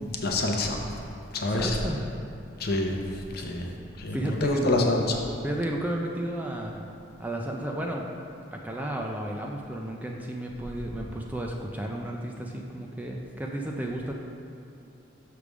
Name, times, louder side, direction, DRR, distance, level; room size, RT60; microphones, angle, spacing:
voice 1, 0.2-0.8 1.3-1.8 2.6-3.7 4.0-5.2, left 2 dB, 50° left, 1 dB, 0.7 m, -27 dB
voice 2, 1.5-2.1 3.3-3.5 4.0-4.9 5.4-6.8 7.2-8.1 8.5-14.1, right 1 dB, 10° right, 0 dB, 0.4 m, -33 dB
6.7 x 3.3 x 6.0 m, 2.6 s
head